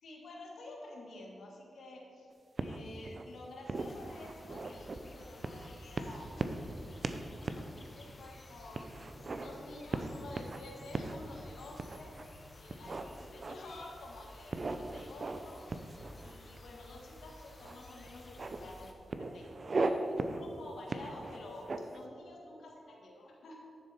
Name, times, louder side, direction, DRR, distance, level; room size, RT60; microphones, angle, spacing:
voice 1, 0.0-2.3 2.6-8.9 9.4-12.2 12.5-15.6 16.2-23.6, left 2 dB, 85° left, -1 dB, 1.8 m, -50 dB
sound 1, 2.6-3.2 3.7-5.0 5.4-5.7 6.0-6.7 7.0-7.2 7.4-7.7 8.1-8.2 8.7-9.5 9.9-10.6 10.9-11.2 11.8-12.3 12.7-13.8 14.5-15.4 15.7-16.6 17.6-17.7 18.1-18.6 19.1-19.9 20.2-20.4 20.9-22.0, right 3 dB, 40° right, 0.6 m, -37 dB
sound 2, 3.7-18.9, left 1 dB, 35° left, 0.9 m, -54 dB
11.0 x 6.9 x 4.3 m, 2.6 s
wide cardioid pair, 110°, 0 cm